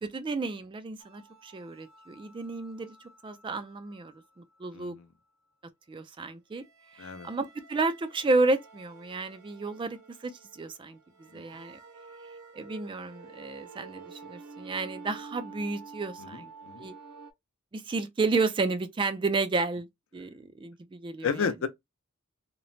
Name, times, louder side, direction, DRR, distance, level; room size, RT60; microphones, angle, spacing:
voice 1, 0.0-3.0 3.2-5.0 5.9-6.6 6.9-11.0 11.3-11.8 12.5-16.5 16.8-16.9 17.7-21.5, right 3 dB, 25° right, 0.3 m, -32 dB
sound 1, 1.0-4.7 6.6-17.3, right 4 dB, 85° right, 0.6 m, -50 dB
voice 2, 21.2-21.7, left 6 dB, 65° left, 0.5 m, -31 dB
3.0 x 2.0 x 2.5 m
head